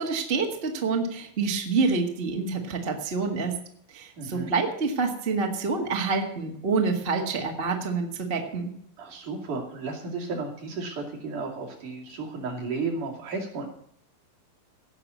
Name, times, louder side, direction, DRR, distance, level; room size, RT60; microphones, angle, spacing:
voice 1, 0.0-3.5 3.9-8.7, right 4 dB, 35° right, 2 dB, 0.9 m, -27 dB
voice 2, 4.2-4.5 9.0-13.7, right 3 dB, 60° right, -1 dB, 3.9 m, -33 dB
17.0 x 5.9 x 8.4 m, 0.66 s
omnidirectional pair, 4.2 m